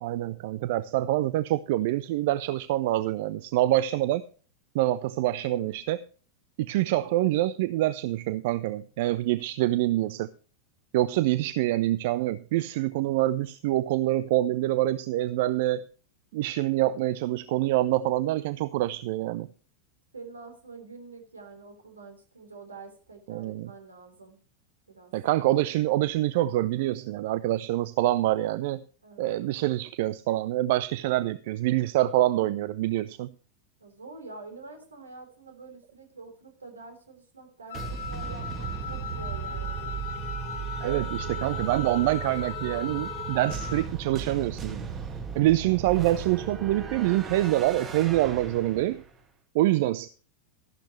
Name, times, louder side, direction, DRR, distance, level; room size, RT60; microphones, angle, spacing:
voice 1, 0.0-4.2 4.7-6.0 6.6-10.3 10.9-15.9 16.3-19.5 23.3-23.7 25.1-28.8 29.2-33.3 40.8-44.9 45.3-49.0 49.5-50.1, right 15 dB, 50° right, 16 dB, 0.5 m, -26 dB
voice 2, 5.3-5.8 11.1-11.4 20.1-24.4 24.9-25.1 29.0-29.4 33.8-39.9, right 3 dB, 75° right, 5 dB, 3.4 m, -46 dB
Wind instrument woodwind instrument, 37.7-43.9, left 9 dB, 60° left, 0.6 m, -38 dB
sound 1, 37.7-49.1, right 6 dB, 25° right, 2.2 m, -36 dB
13.5 x 11.5 x 3.2 m, 0.39 s
figure-of-eight pair, 90°, 0 cm